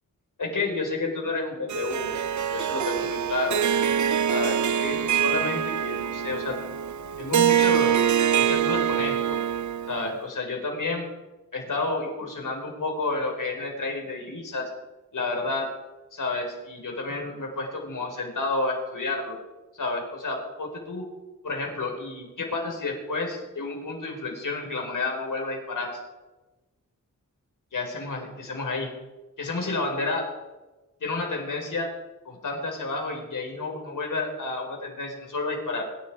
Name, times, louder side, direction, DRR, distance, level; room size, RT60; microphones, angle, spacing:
voice 1, 0.4-2.2 2.5-3.6 4.3-6.6 7.2-8.1 8.4-9.4 9.9-11.1 11.5-14.7 15.1-15.7 16.1-19.4 19.7-21.0 21.4-26.0 27.7-28.9 29.4-30.2 31.0-31.9 32.2-35.9, left 3 dB, 70° left, 2 dB, 4.6 m, -30 dB
Harp, 1.7-10.1, right 9 dB, 60° right, 0.5 m, -24 dB
25.0 x 11.0 x 4.9 m, 1.1 s
wide cardioid pair, 85°, 33 cm